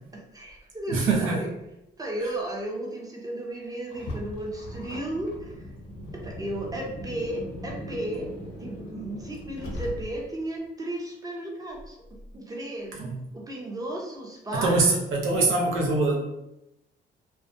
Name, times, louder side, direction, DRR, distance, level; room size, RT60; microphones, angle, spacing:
voice 1, 0.1-1.5 2.0-5.7 6.1-8.3 8.6-12.0 12.3-13.0 13.3-15.0 16.1-16.2, right 1 dB, 20° right, -1 dB, 0.6 m, -34 dB
voice 2, 0.9-1.4 13.0-13.1 14.5-16.2, right 3 dB, 80° right, -1 dB, 0.7 m, -23 dB
Car, 3.9-10.4, equal, 70° left, 0.7 m, -39 dB
2.4 x 2.1 x 2.5 m, 0.88 s
cardioid pair, 90°, 20 cm